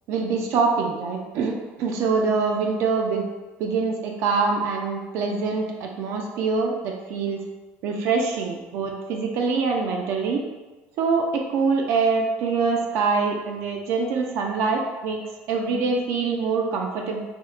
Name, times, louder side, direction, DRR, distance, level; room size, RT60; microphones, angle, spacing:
voice 1, 0.1-3.3 3.6-7.4 7.8-10.4 11.0-15.2 15.5-17.2, right 4 dB, 55° right, 2 dB, 0.3 m, -24 dB
4.3 x 2.1 x 2.3 m, 1.2 s
cardioid pair, 170°, 5 cm